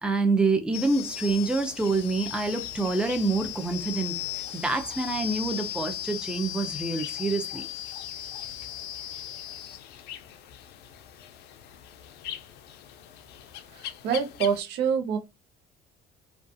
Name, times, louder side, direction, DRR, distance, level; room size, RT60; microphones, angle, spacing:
voice 1, 0.0-4.2 4.5-7.6, right 3 dB, 5° right, 0.5 m, -27 dB
sound 1, 0.7-14.6, left 12 dB, 75° left, 0.4 m, -38 dB
voice 2, 13.7-15.2, right 7 dB, 80° right, 0.7 m, -26 dB
2.5 x 2.3 x 2.5 m
cardioid pair, 110°, 17 cm